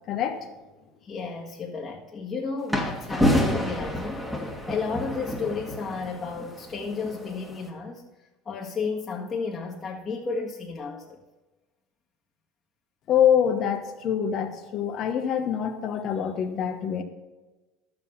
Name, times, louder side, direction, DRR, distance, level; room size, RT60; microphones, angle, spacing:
voice 1, 0.1-0.5 13.1-17.0, left 8 dB, 45° left, 6 dB, 1.1 m, -25 dB
voice 2, 1.0-8.1 8.4-11.2, left 4 dB, 30° left, -5 dB, 1.7 m, -33 dB
sound 1, 2.7-7.7, equal, ahead, 1.8 m, -28 dB
11.5 x 7.9 x 5.7 m, 1.2 s
supercardioid pair, 110°, 0 cm